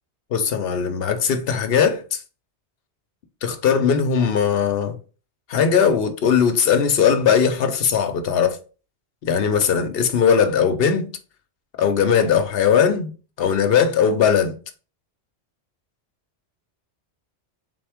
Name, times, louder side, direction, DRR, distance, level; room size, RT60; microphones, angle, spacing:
voice 1, 0.3-2.2 3.4-5.0 5.5-8.6 9.2-11.1 11.8-13.1 13.4-14.6, left 7 dB, 65° left, 0.8 m, -19 dB
3.8 x 3.5 x 3.4 m
omnidirectional pair, 1.2 m